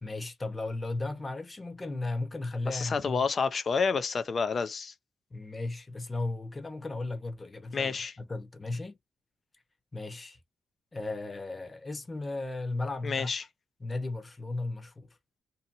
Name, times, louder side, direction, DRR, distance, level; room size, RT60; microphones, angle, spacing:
voice 1, 0.0-3.2 5.3-9.0 9.9-10.4 10.9-13.3 13.8-15.1, left 2 dB, 20° left, 0.8 m, -35 dB
voice 2, 2.7-4.9 7.7-8.1 13.0-13.4, left 5 dB, 40° left, 0.4 m, -29 dB
2.7 x 2.5 x 2.5 m
cardioid pair, 125°, 0 cm